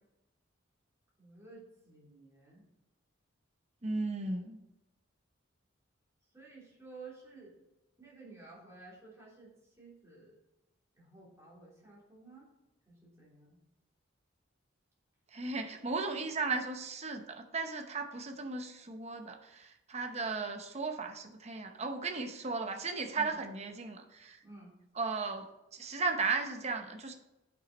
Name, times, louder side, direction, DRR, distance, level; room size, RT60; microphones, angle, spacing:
voice 1, 1.2-2.6 6.3-7.5 8.0-10.4 10.9-12.5 12.8-13.6 23.1-23.3 24.4-24.7, right 3 dB, 15° right, -6 dB, 3.2 m, -53 dB
voice 2, 3.8-4.6 15.3-24.4 25.0-25.5 25.7-27.1, right 4 dB, 35° right, 5 dB, 0.8 m, -36 dB
8.9 x 6.2 x 4.2 m, 0.97 s
head